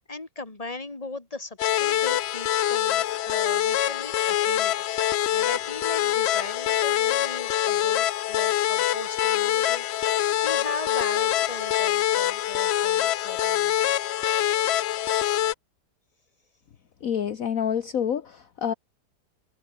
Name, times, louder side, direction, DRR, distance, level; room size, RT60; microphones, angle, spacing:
voice 1, 0.0-4.7 5.3-13.7, left 3 dB, 20° left, 2.6 m, -38 dB
sound 1, 1.6-15.5, left 12 dB, 80° left, 0.5 m, -24 dB
voice 2, 17.0-18.7, left 8 dB, 60° left, 1.5 m, -27 dB
omnidirectional pair, 1.7 m